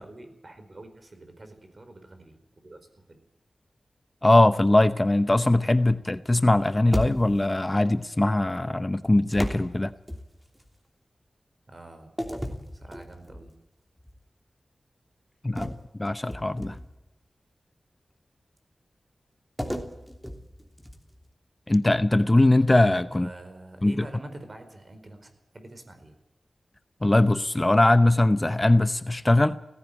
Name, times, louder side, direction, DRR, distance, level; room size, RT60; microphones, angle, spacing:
voice 1, 0.0-3.2 11.7-12.1 12.7-13.5 23.1-26.1, right 2 dB, 40° right, 8 dB, 4.7 m, -46 dB
voice 2, 4.2-9.9 15.4-15.7 16.0-16.8 21.7-23.3 23.8-24.1 27.0-29.6, left 1 dB, 20° left, 12 dB, 0.7 m, -21 dB
sound 1, 6.9-7.6 9.3-10.7 12.2-13.5 14.0-14.2 15.5-17.1 19.6-21.2, equal, ahead, 3.1 m, -34 dB
17.5 x 15.5 x 9.7 m, 0.94 s
wide cardioid pair, 80°, 0 cm